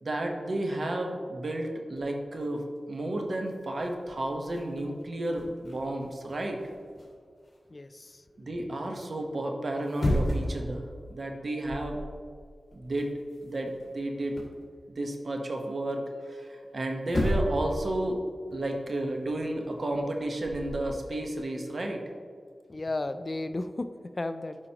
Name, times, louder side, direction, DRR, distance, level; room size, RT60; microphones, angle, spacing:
voice 1, 0.0-6.6 8.4-12.0 12.7-13.1 13.4-14.3 14.9-18.2 18.5-22.0, right 1 dB, 60° right, 2 dB, 1.0 m, -32 dB
sound 1, 2.0-2.3 2.9-3.0 3.3-7.6 9.7-10.7 11.0-11.3 11.6-12.2 12.4-14.6 16.6-16.7 17.0-17.8 18.0-20.9, equal, 55° left, 1.9 m, -34 dB
voice 2, 7.7-8.1 22.7-24.6, left 2 dB, 40° left, 11 dB, 0.3 m, -34 dB
11.0 x 4.9 x 2.9 m, 2.1 s
wide cardioid pair, 60°, 0 cm